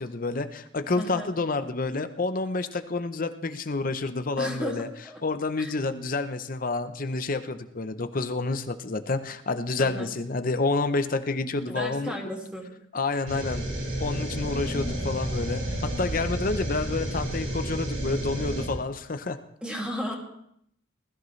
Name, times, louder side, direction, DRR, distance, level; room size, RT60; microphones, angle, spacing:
voice 1, 0.0-4.9 5.2-12.2 12.9-13.6 14.0-19.4, left 3 dB, 45° left, 10 dB, 0.7 m, -29 dB
voice 2, 1.0-1.3 4.4-5.2 5.6-5.7 9.8-10.1 11.7-12.7 19.6-20.2, equal, 5° right, -1 dB, 2.2 m, -34 dB
sound 1, 13.3-18.7, right 1 dB, 85° right, 5.0 m, -31 dB
20.5 x 14.0 x 3.2 m, 0.73 s
head